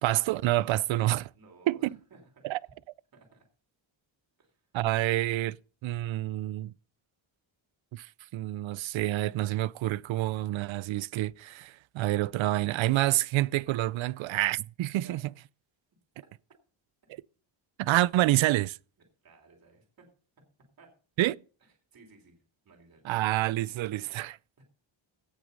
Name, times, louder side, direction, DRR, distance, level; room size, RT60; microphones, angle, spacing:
voice 1, 0.0-1.3 1.7-1.9 2.4-2.6 4.7-5.6 5.8-6.7 7.9-15.2 17.8-18.8 21.2-21.4 23.0-24.4, right 16 dB, 75° right, 0.5 m, -28 dB
voice 2, 1.3-2.8 3.1-3.5 4.4-4.6 14.9-15.2 19.2-20.1 20.8-20.9 21.6-23.1 24.6-24.7, right 3 dB, 45° right, 3.3 m, -57 dB
17.0 x 6.4 x 5.2 m
wide cardioid pair, 165°, 48 cm